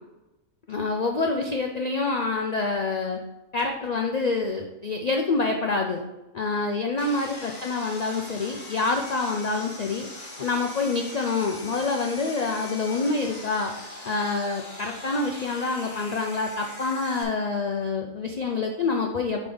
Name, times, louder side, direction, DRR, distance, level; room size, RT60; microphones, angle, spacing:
voice 1, 0.7-3.2 3.5-6.0 6.3-10.1 10.4-13.7 14.0-19.5, left 3 dB, 80° left, 2 dB, 0.3 m, -27 dB
Sawing, 7.0-17.2, left 2 dB, 30° left, 1.3 m, -41 dB
5.1 x 4.0 x 5.4 m, 0.98 s
omnidirectional pair, 1.4 m